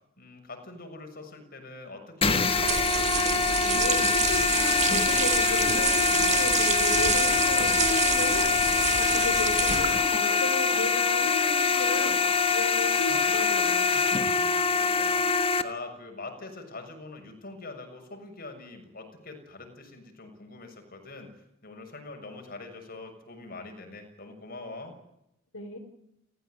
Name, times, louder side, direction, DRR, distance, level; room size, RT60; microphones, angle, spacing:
voice 1, 0.2-2.9 14.3-21.3 21.6-25.0, left 3 dB, 40° left, 5 dB, 6.7 m, -43 dB
sound 1, 2.2-15.6, left 5 dB, 25° left, 1.5 m, -24 dB
sound 2, 2.3-10.1, right 7 dB, 30° right, 1.7 m, -28 dB
voice 2, 3.6-8.5 9.0-13.9 25.5-25.8, left 1 dB, 70° left, 5 dB, 4.1 m, -34 dB
30.0 x 15.5 x 9.3 m, 0.83 s
head